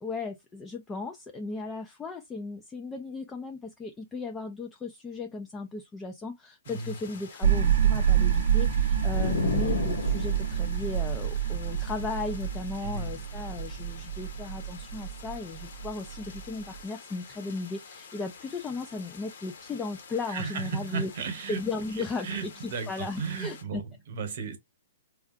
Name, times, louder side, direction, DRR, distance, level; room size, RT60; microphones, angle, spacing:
voice 1, 0.0-21.1 21.5-23.8, left 3 dB, 15° left, 0.3 m, -36 dB
sound 1, 6.6-23.6, left 5 dB, 65° left, 1.0 m, -49 dB
voice 2, 6.7-7.0 12.8-13.2 20.3-21.6 21.9-24.6, right 5 dB, 55° right, 1.0 m, -35 dB
sound 2, 7.4-16.8, right 9 dB, 70° right, 0.5 m, -27 dB
sound 3, 9.1-10.7, left 6 dB, 80° left, 0.4 m, -31 dB
3.4 x 2.4 x 2.4 m
hypercardioid pair, 150°, 0 cm